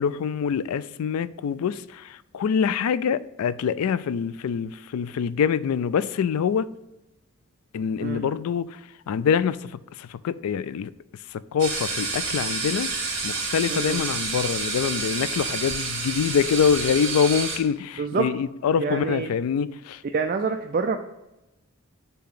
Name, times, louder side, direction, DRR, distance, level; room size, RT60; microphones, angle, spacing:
voice 1, 0.0-6.7 7.7-8.8 9.1-10.9 11.3-12.9 13.2-20.0, left 7 dB, 80° left, 0.3 m, -25 dB
sound 1, 11.6-17.6, right 4 dB, 55° right, 1.9 m, -29 dB
voice 2, 13.7-14.0 18.0-18.3 18.8-19.3 20.1-21.0, right 4 dB, 40° right, 0.3 m, -26 dB
7.0 x 2.9 x 5.6 m
head